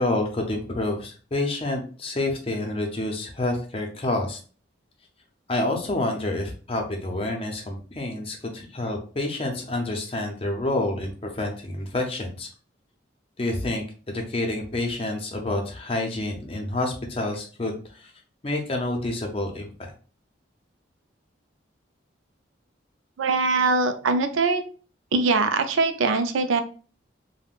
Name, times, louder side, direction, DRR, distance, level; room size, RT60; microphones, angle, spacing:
voice 1, 0.0-4.4 5.5-12.5 13.4-18.1 18.4-19.9, left 2 dB, 30° left, 2 dB, 0.5 m, -28 dB
voice 2, 23.2-24.6 25.1-26.6, right 3 dB, 90° right, 8 dB, 0.4 m, -22 dB
3.5 x 2.1 x 2.4 m, 0.39 s
head